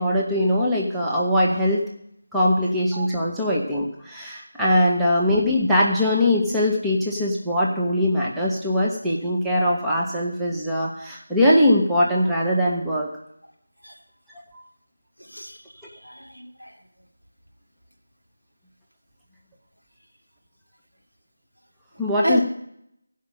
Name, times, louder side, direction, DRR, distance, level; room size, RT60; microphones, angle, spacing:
voice 1, 0.0-1.9 2.3-13.1 22.0-22.4, left 1 dB, 5° right, -7 dB, 1.1 m, -21 dB
voice 2, 15.2-16.8 21.9-22.4, equal, 85° right, 0 dB, 2.4 m, -30 dB
16.0 x 5.6 x 6.6 m, 0.75 s
figure-of-eight pair, 165°, 0 cm